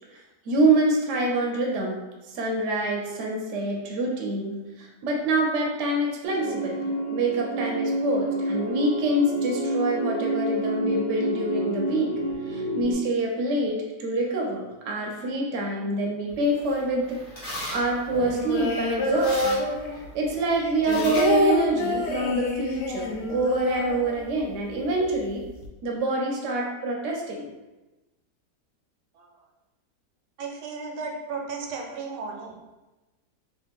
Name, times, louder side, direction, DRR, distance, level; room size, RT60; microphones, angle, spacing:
voice 1, 0.5-12.1 12.5-19.6 20.1-25.4 25.8-27.5, right 2 dB, 60° right, 0 dB, 0.8 m, -26 dB
sound 1, 6.2-12.9, right 1 dB, 30° left, 0.5 m, -28 dB
sound 2, 16.3-22.4, left 1 dB, 50° left, 1.4 m, -40 dB
sound 3, 18.1-20.2 20.6-24.5 24.8-24.9 25.2-25.7, left 1 dB, 80° left, 1.2 m, -27 dB
voice 2, 30.4-32.6, right 4 dB, 80° right, 1 dB, 1.2 m, -34 dB
3.2 x 2.4 x 3.5 m, 1.1 s
omnidirectional pair, 1.8 m